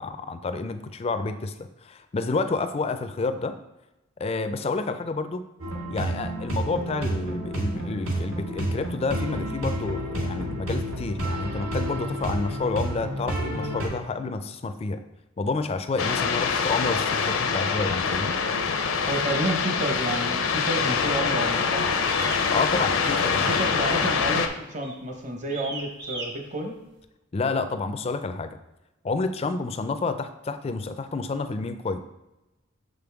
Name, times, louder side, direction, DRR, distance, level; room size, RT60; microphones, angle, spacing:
voice 1, 0.0-3.6 4.2-5.4 5.9-15.0 15.4-18.4 22.5-23.6 27.3-28.6 29.0-32.0, left 3 dB, 30° left, 9 dB, 0.3 m, -29 dB
sound 1, 5.6-13.9, right 1 dB, 85° right, 1.6 m, -30 dB
sound 2, 16.0-24.5, left 5 dB, 80° left, 0.6 m, -25 dB
voice 2, 19.1-21.8 23.3-26.8, right 1 dB, 35° right, 3 dB, 0.9 m, -30 dB
sound 3, 22.1-22.5 23.3-23.7 23.9-24.3 24.8-25.0 25.5-26.3, right 3 dB, 55° right, 1.1 m, -37 dB
6.5 x 5.2 x 3.4 m, 1.0 s
head